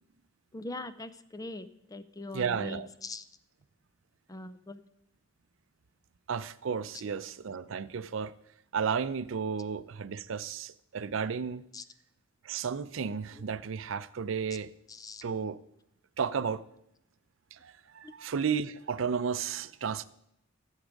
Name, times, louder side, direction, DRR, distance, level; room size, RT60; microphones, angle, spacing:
voice 1, 0.5-3.2 4.3-4.8 6.9-7.0 11.7-11.8 13.3-13.5 14.9-15.2 18.0-18.1, left 2 dB, 20° left, 0.5 m, -42 dB
voice 2, 2.3-2.9 6.3-8.3 8.7-11.6 12.4-14.7 15.2-15.6 16.2-16.6 17.5-20.0, right 6 dB, 75° right, 0.5 m, -33 dB
14.5 x 7.3 x 5.2 m
head